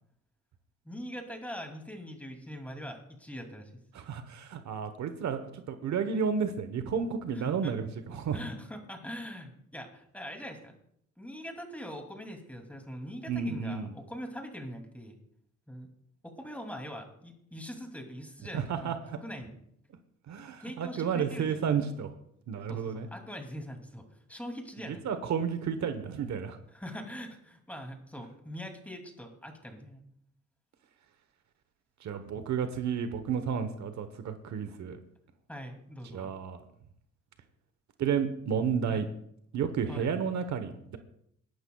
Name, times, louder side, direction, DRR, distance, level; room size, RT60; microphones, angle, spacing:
voice 1, 0.8-3.7 7.3-7.7 8.3-10.8 11.2-15.2 15.7-15.9 16.2-19.5 20.6-21.6 22.7-25.0 26.7-30.0 35.5-36.3 38.9-39.0 39.9-40.1, equal, 5° left, 3 dB, 2.6 m, -42 dB
voice 2, 3.9-8.4 13.3-13.9 18.5-18.9 20.3-22.1 22.5-23.1 25.0-26.6 32.0-35.0 36.1-36.6 38.0-39.1 39.5-41.0, right 7 dB, 65° right, 9 dB, 1.1 m, -31 dB
20.5 x 11.5 x 2.3 m, 0.71 s
cardioid pair, 90°, 30 cm